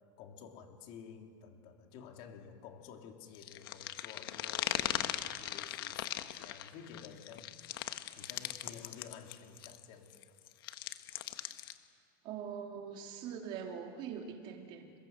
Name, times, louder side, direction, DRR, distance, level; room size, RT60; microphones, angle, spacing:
voice 1, 0.2-5.0 5.3-7.5 8.1-10.2, left 7 dB, 50° left, 3 dB, 3.2 m, -52 dB
sound 1, 3.3-9.8 10.1-11.7, left 13 dB, 75° left, 1.5 m, -39 dB
voice 2, 12.2-14.9, right 7 dB, 40° right, 3 dB, 3.1 m, -43 dB
28.0 x 21.0 x 8.2 m, 2.4 s
supercardioid pair, 150°, 12 cm